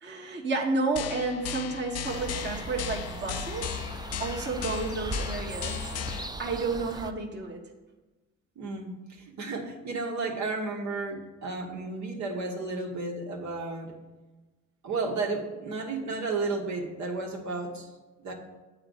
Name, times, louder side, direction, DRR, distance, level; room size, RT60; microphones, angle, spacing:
voice 1, 0.0-3.8 4.2-5.8 6.4-7.6, right 3 dB, 35° right, -1 dB, 1.2 m, -31 dB
sound 1, 1.0-6.3, left 10 dB, 55° left, 0.5 m, -36 dB
sound 2, 2.0-7.1, right 1 dB, 15° right, 0.5 m, -38 dB
voice 2, 8.5-13.9 14.8-17.9 18.2-18.3, right 3 dB, 70° right, 0 dB, 1.5 m, -33 dB
8.7 x 4.0 x 6.4 m, 1.2 s
cardioid pair, 90°, 30 cm